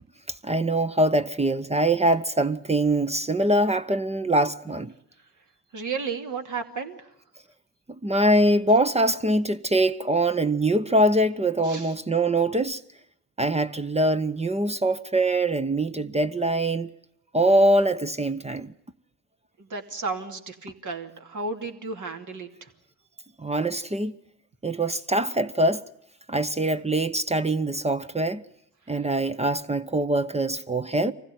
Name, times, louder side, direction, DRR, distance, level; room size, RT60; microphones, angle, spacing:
voice 1, 0.4-4.9 8.0-12.8 13.4-16.9 17.3-18.7 23.4-24.1 24.6-25.8 26.3-28.4 28.9-31.1, right 1 dB, 15° right, 0.9 m, -23 dB
voice 2, 5.7-7.1 11.6-11.9 19.6-22.7 28.9-29.0, right 4 dB, 50° right, 2.8 m, -33 dB
24.0 x 15.5 x 9.4 m
supercardioid pair, 60°, 38 cm